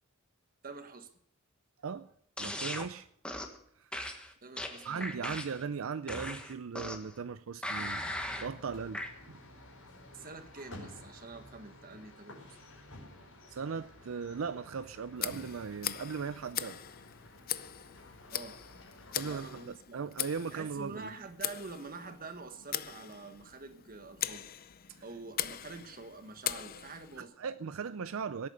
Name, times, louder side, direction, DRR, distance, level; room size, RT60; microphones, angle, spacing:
voice 1, 0.6-1.1 4.4-5.4 10.1-12.6 18.3-18.6 19.2-20.1 20.5-24.5 25.0-27.4, right 3 dB, 45° right, 1.5 m, -46 dB
sound 1, 2.4-2.9 3.2-3.6 3.9-5.6 6.1-7.1 7.6-8.5 8.9-9.1, left 1 dB, 5° left, 1.5 m, -38 dB
voice 2, 2.4-3.1 3.8-3.9 4.8-8.1 8.4-9.0 9.3-9.4 13.5-16.8 19.2-21.1 24.9-25.0 27.2-28.5, right 6 dB, 75° right, 0.5 m, -38 dB
sound 2, 7.7-19.6, left 1 dB, 75° left, 5.1 m, -53 dB
Tick, 15.2-27.2, left 12 dB, 45° left, 0.6 m, -41 dB
17.5 x 8.7 x 6.7 m
head